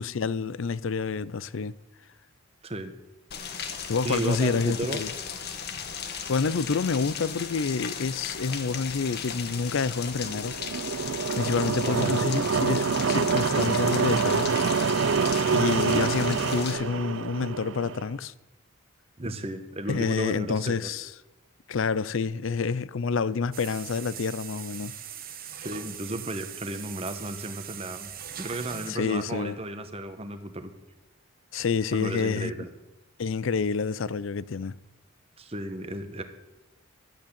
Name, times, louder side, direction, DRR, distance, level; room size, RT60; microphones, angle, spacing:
voice 1, 0.0-1.8 3.9-5.1 6.3-10.9 11.3-14.6 15.5-18.3 19.9-21.1 21.7-25.0 28.9-29.6 31.5-32.5 33.2-34.8, left 5 dB, 70° left, 0.5 m, -28 dB
Rain, 3.3-16.7, left 7 dB, 50° left, 1.2 m, -36 dB
voice 2, 4.0-5.0 11.8-12.1 19.2-20.9 25.6-28.1 28.4-30.7 31.9-32.7 35.4-36.2, right 1 dB, 30° right, 1.1 m, -34 dB
sound 1, 10.1-18.0, right 5 dB, 65° right, 0.5 m, -26 dB
sound 2, 23.5-28.9, right 9 dB, 45° right, 1.2 m, -41 dB
12.0 x 8.5 x 8.7 m
head